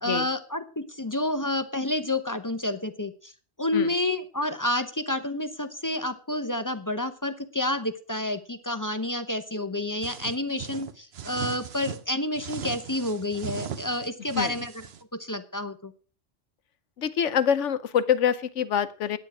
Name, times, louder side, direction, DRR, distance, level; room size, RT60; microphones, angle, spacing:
voice 1, 0.0-3.3 3.6-14.9 15.1-15.9, left 1 dB, 20° left, 10 dB, 0.6 m, -29 dB
sound 1, 10.0-12.0 12.3-15.0, right 7 dB, 60° right, 1.1 m, -38 dB
voice 2, 17.0-19.2, left 8 dB, 85° left, 14 dB, 1.2 m, -25 dB
10.0 x 9.1 x 6.1 m, 0.39 s
omnidirectional pair, 1.2 m